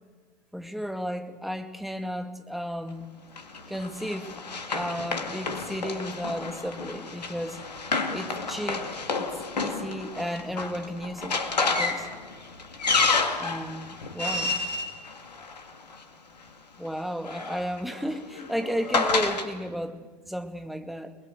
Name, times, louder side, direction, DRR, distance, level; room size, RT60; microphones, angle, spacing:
voice 1, 0.5-3.1 3.7-4.3 4.7-7.6 8.1-12.1 13.4-14.5 16.8-21.2, equal, ahead, 7 dB, 2.2 m, -33 dB
Run, 3.4-16.0 17.0-19.5, left 4 dB, 80° left, 2.3 m, -30 dB
28.5 x 21.0 x 7.9 m, 1.4 s
figure-of-eight pair, 80°, 21 cm